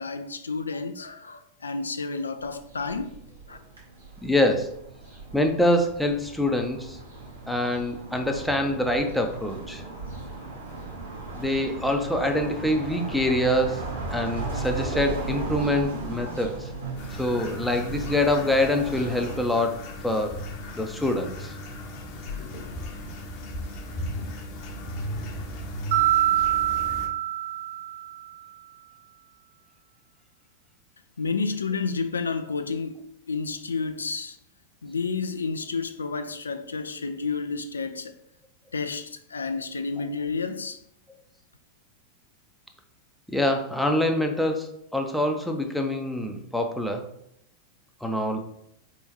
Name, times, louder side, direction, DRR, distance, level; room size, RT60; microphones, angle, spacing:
voice 1, 0.0-3.2 3.5-3.6 31.2-34.4 34.8-38.2 38.7-40.8, left 4 dB, 75° left, 0.3 m, -30 dB
sound 1, 2.4-19.4, right 3 dB, 75° right, 1.5 m, -36 dB
voice 2, 4.2-4.7 5.3-7.0 7.5-9.8 11.3-16.7 17.2-19.8 20.0-20.4 20.7-21.5 43.3-47.1 48.0-48.4, left 1 dB, ahead, 0.6 m, -25 dB
sound 2, 17.0-27.1, left 1 dB, 40° left, 0.8 m, -36 dB
Mallet percussion, 25.9-28.3, right 13 dB, 55° right, 0.5 m, -24 dB
4.3 x 3.5 x 3.0 m
figure-of-eight pair, 90°, 0 cm